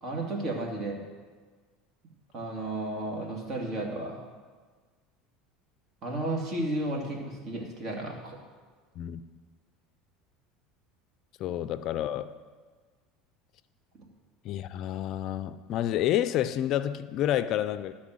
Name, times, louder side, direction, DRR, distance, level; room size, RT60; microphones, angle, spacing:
voice 1, 0.0-1.0 2.3-4.3 6.0-8.4, right 1 dB, 45° right, 2.3 m, -33 dB
voice 2, 11.4-12.4 14.4-17.9, left 12 dB, 55° left, 0.4 m, -29 dB
13.0 x 4.3 x 7.6 m
supercardioid pair, 100°, 0 cm